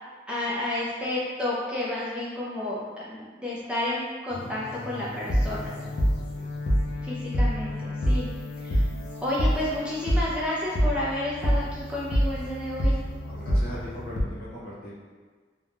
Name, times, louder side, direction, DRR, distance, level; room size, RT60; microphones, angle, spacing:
voice 1, 0.3-5.7 7.0-8.3 8.6-8.8 9.2-12.9, left 1 dB, 5° right, -7 dB, 0.3 m, -31 dB
sound 1, 4.3-14.2, equal, 75° left, 0.5 m, -27 dB
voice 2, 13.2-14.9, equal, 55° left, -9 dB, 0.9 m, -39 dB
2.4 x 2.2 x 3.1 m, 1.5 s
head